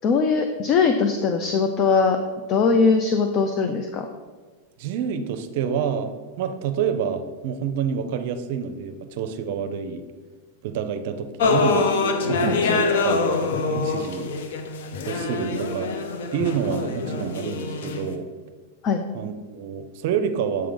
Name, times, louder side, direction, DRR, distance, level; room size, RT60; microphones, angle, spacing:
voice 1, 0.0-2.2 2.5-4.1 12.5-12.8 18.8-19.0, left 5 dB, 40° left, 6 dB, 0.5 m, -21 dB
voice 2, 4.8-10.0 10.6-11.9 12.3-14.3 15.1-15.9 16.3-18.3 19.1-20.7, right 7 dB, 60° right, 8 dB, 0.6 m, -28 dB
sound 1, 11.4-18.1, left 3 dB, 75° left, 0.7 m, -24 dB
7.8 x 3.7 x 5.1 m, 1.4 s
supercardioid pair, 130°, 0 cm